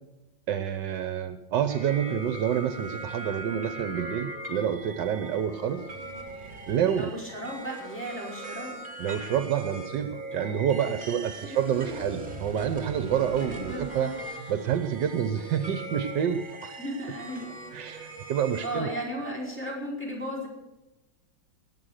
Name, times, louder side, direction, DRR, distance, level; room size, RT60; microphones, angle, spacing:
voice 1, 0.5-5.9 6.7-7.1 9.0-14.1 14.5-16.8 17.7-18.9, right 9 dB, 70° right, 10 dB, 1.4 m, -28 dB
sound 1, 1.7-18.8, right 2 dB, 25° right, 2.5 m, -40 dB
voice 2, 7.0-8.8 11.4-11.5 13.5-14.2 16.8-17.5 18.6-20.5, equal, 5° left, -4 dB, 4.6 m, -35 dB
20.0 x 7.8 x 6.5 m, 1.0 s
omnidirectional pair, 2.0 m